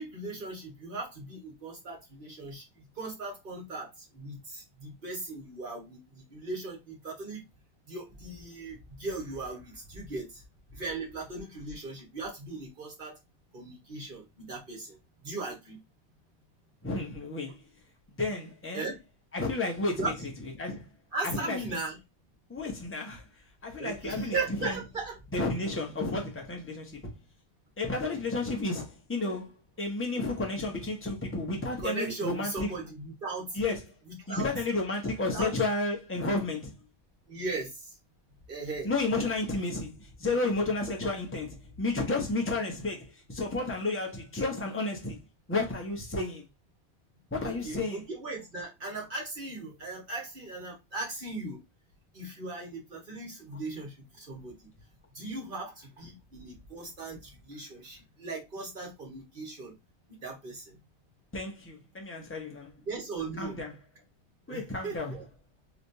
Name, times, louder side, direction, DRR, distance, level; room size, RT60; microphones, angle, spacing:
voice 1, 0.0-2.6 3.0-3.9 4.1-7.4 7.9-10.4 10.7-13.2 13.5-15.0 15.2-15.8 18.7-19.0 20.0-20.1 21.1-21.9 23.8-25.1 31.8-33.6 34.1-34.5 35.2-35.6 37.3-37.7 38.5-38.9 47.4-51.6 52.1-54.6 55.2-59.7 60.1-60.7 62.9-63.6 64.5-65.3, right 3 dB, 50° right, 1.6 m, -38 dB
voice 2, 16.8-17.6 18.1-18.9 19.3-20.9 21.2-21.8 22.5-23.3 23.6-24.8 25.3-27.1 27.8-32.7 33.5-33.8 34.3-36.8 38.8-45.2 45.5-46.5 47.3-48.0 61.3-62.7 63.4-63.7 64.5-65.2, left 2 dB, 10° left, 0.9 m, -32 dB
3.3 x 3.0 x 2.7 m
omnidirectional pair, 1.2 m